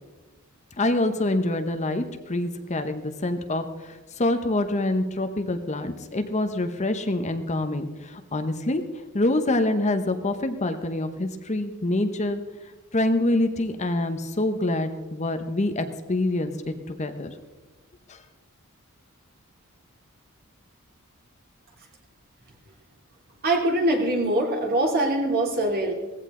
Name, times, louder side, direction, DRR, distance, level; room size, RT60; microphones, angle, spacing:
voice 1, 0.8-8.8 9.1-12.4 12.9-17.3 18.1-18.2, left 2 dB, 30° left, 8 dB, 0.9 m, -26 dB
voice 2, 23.4-25.9, right 1 dB, 45° right, 0 dB, 3.0 m, -23 dB
18.5 x 15.0 x 3.8 m, 1.3 s
head